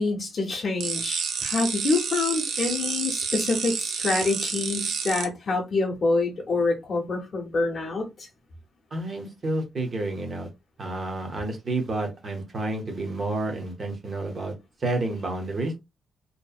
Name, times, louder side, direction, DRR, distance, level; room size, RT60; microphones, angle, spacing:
voice 1, 0.0-8.3, left 3 dB, 35° left, 0.6 m, -26 dB
sound 1, 0.8-5.2, right 6 dB, 75° right, 0.5 m, -29 dB
voice 2, 8.9-10.5 10.8-14.5 14.8-15.7, right 2 dB, 30° right, 0.7 m, -30 dB
2.7 x 2.0 x 2.3 m
wide cardioid pair, 170°, 0 cm